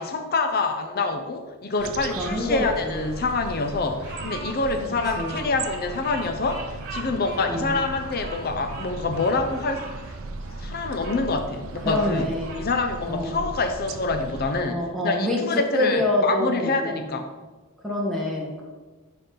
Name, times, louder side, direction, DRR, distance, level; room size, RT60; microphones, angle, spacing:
voice 1, 0.0-9.9 10.6-12.2 12.6-17.3, left 3 dB, 45° left, 6 dB, 0.6 m, -26 dB
sound 1, 1.8-14.6, right 3 dB, 70° right, 0.5 m, -37 dB
voice 2, 2.1-3.1 5.2-5.4 7.5-7.8 11.8-12.5 13.1-13.4 14.6-15.4 15.7-17.1 17.8-18.6, left 1 dB, ahead, -3 dB, 1.2 m, -26 dB
Bird vocalization bird call bird song, 2.2-11.2 11.7-12.7, right 2 dB, 40° right, 1.7 m, -41 dB
10.5 x 4.2 x 3.8 m, 1.3 s
head